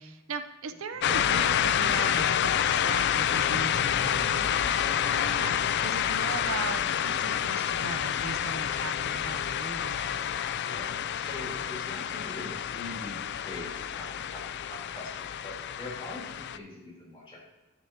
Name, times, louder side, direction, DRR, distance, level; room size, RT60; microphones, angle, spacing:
voice 1, 0.0-10.2, right 4 dB, 80° right, 9 dB, 0.6 m, -39 dB
sound 1, 1.0-16.6, left 9 dB, 55° left, 0.4 m, -28 dB
voice 2, 10.5-13.2 13.4-14.4 14.7-17.4, left 2 dB, 25° left, -4 dB, 3.4 m, -43 dB
9.8 x 9.8 x 2.8 m, 1.1 s
head